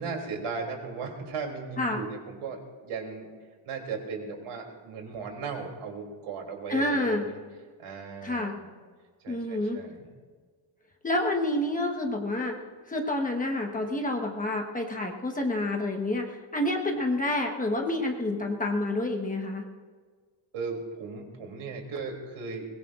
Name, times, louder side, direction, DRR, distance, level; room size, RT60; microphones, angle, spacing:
voice 1, 0.0-3.3 3.6-7.4 7.8-8.6 9.2-10.1 20.5-22.7, right 4 dB, 80° right, 2 dB, 3.2 m, -37 dB
voice 2, 6.7-7.2 8.2-8.5 9.3-9.8 11.0-12.6 12.9-19.6, left 1 dB, 15° left, 1 dB, 1.2 m, -28 dB
22.0 x 21.5 x 2.5 m, 1.5 s
cardioid pair, 180°, 49 cm